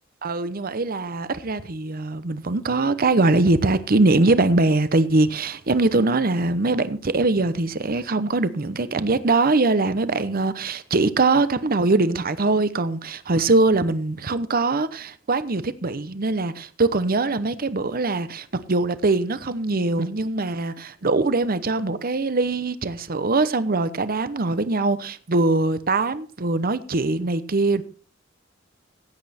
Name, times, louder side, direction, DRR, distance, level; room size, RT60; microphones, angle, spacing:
voice 1, 0.2-27.8, right 3 dB, 45° right, 0.9 m, -22 dB
16.0 x 8.6 x 4.3 m
head